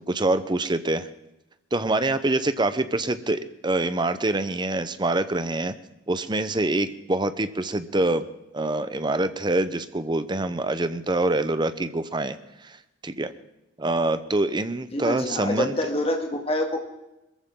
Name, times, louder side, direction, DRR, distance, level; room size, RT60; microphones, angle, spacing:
voice 1, 0.1-1.1 1.7-5.7 6.1-8.3 8.5-12.4 12.6-12.8 13.0-13.3 13.8-15.7, right 2 dB, 25° right, 12 dB, 0.8 m, -25 dB
voice 2, 14.9-16.9, left 1 dB, 30° left, 2 dB, 2.0 m, -26 dB
22.5 x 14.5 x 3.8 m, 0.95 s
head